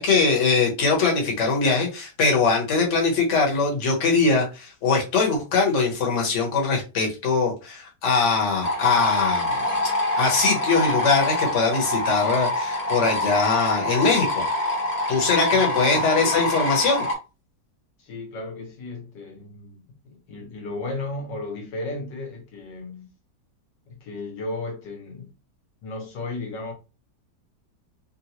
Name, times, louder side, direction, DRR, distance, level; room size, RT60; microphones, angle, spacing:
voice 1, 0.0-9.6 10.2-14.5 15.1-17.0, left 4 dB, 45° left, 1.3 m, -22 dB
sound 1, 8.6-17.1, left 1 dB, 30° left, 0.9 m, -25 dB
voice 2, 15.5-16.0 18.0-23.1 23.9-25.3 25.8-26.7, left 2 dB, 85° left, 1.8 m, -34 dB
3.9 x 2.3 x 2.8 m
omnidirectional pair, 1.9 m